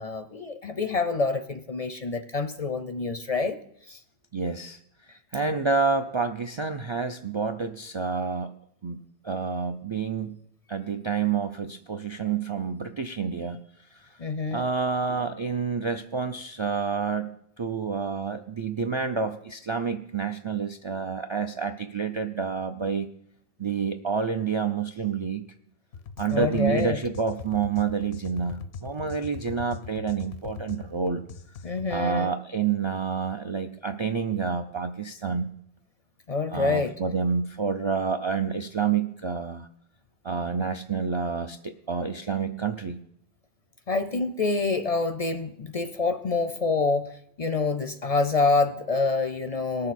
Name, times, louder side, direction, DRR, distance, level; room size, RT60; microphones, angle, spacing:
voice 1, 0.0-3.6 3.9-4.0 14.2-14.6 26.3-27.0 31.6-32.3 36.3-36.9 43.9-49.9, left 3 dB, 45° left, 10 dB, 0.5 m, -27 dB
voice 2, 4.3-4.8 5.3-8.5 8.8-10.4 10.7-13.6 14.5-23.1 23.6-25.4 26.2-31.2 31.9-35.5 36.5-39.7 40.2-43.0, right 5 dB, 45° right, 8 dB, 0.4 m, -28 dB
sound 1, 25.9-32.0, left 5 dB, 85° left, 0.9 m, -41 dB
19.0 x 6.7 x 4.1 m, 0.69 s
omnidirectional pair, 1.1 m